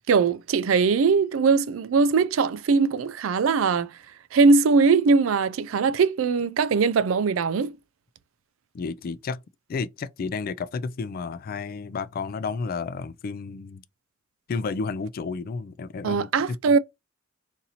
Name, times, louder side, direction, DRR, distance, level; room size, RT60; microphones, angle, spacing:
voice 1, 0.1-3.9 4.3-7.7 16.0-16.8, right 4 dB, 80° right, 0.4 m, -21 dB
voice 2, 8.7-9.4 9.7-13.8 14.5-16.6, left 4 dB, 45° left, 0.3 m, -31 dB
2.8 x 2.6 x 4.0 m
head